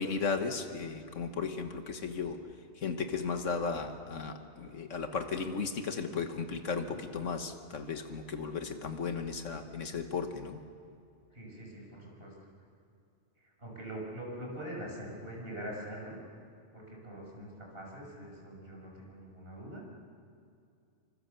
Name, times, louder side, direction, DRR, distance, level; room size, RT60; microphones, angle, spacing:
voice 1, 0.0-2.4 2.7-10.6, left 5 dB, 90° left, 6 dB, 1.7 m, -35 dB
voice 2, 11.3-12.3 13.4-16.2 16.7-19.8, right 1 dB, 50° right, -2 dB, 6.3 m, -43 dB
26.0 x 25.0 x 6.8 m, 2.5 s
omnidirectional pair, 1.3 m